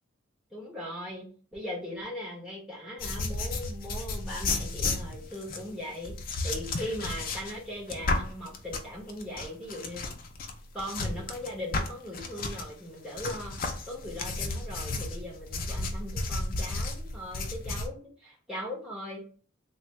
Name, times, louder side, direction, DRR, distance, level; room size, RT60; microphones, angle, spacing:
voice 1, 0.5-6.1 6.4-10.0 10.7-19.3, equal, 5° right, -5 dB, 1.0 m, -39 dB
sound 1, 3.0-12.7 13.2-17.9, left 3 dB, 45° left, 0.4 m, -33 dB
3.3 x 2.1 x 3.1 m, 0.42 s
head